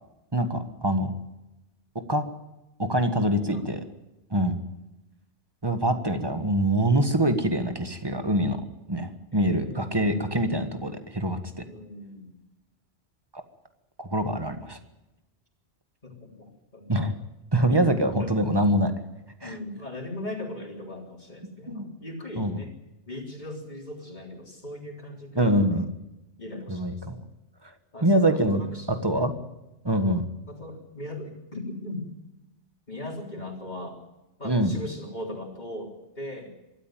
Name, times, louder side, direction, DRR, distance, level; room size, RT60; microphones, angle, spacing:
voice 1, 0.3-1.1 2.1-2.2 2.8-3.8 4.3-4.6 5.6-8.6 8.9-11.6 13.3-13.4 14.0-14.8 16.9-17.1 17.5-18.9 19.4-19.5 21.7-21.9 22.4-22.5 25.4-25.9 26.7-27.2 27.6-27.7 28.0-28.6 28.9-29.3 29.8-30.2 34.4-34.7, right 1 dB, 20° right, 8 dB, 1.6 m, -24 dB
voice 2, 9.3-10.8 11.7-12.3 16.0-16.9 17.7-18.3 19.4-22.7 23.1-25.8 26.4-27.3 27.9-29.4 30.5-32.1 32.9-34.0 34.4-36.5, left 1 dB, 40° left, 1 dB, 3.8 m, -39 dB
23.5 x 13.5 x 9.1 m, 0.96 s
omnidirectional pair, 1.2 m